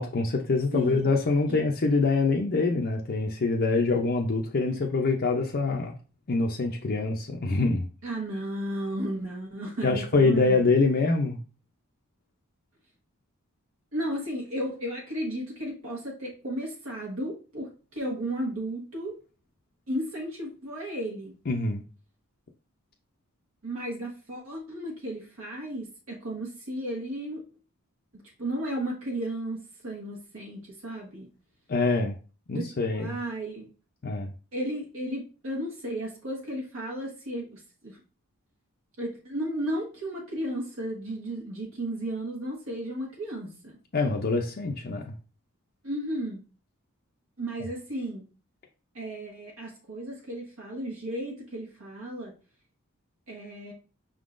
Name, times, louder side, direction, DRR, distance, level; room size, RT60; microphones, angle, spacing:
voice 1, 0.0-6.0 6.3-7.9 9.8-11.4 21.5-21.8 31.7-32.1 32.5-33.2 34.0-34.3 43.9-45.1, left 3 dB, 45° left, 1 dB, 0.5 m, -25 dB
voice 2, 0.7-1.1 1.5-1.6 8.0-10.7 13.9-19.2 19.9-21.3 23.6-27.4 28.1-31.3 32.5-33.7 34.5-38.0 39.0-43.8 45.8-46.4 47.4-48.3 48.9-52.3 53.3-53.7, right 1 dB, 70° right, -2 dB, 1.3 m, -34 dB
5.5 x 3.7 x 2.5 m, 0.35 s
head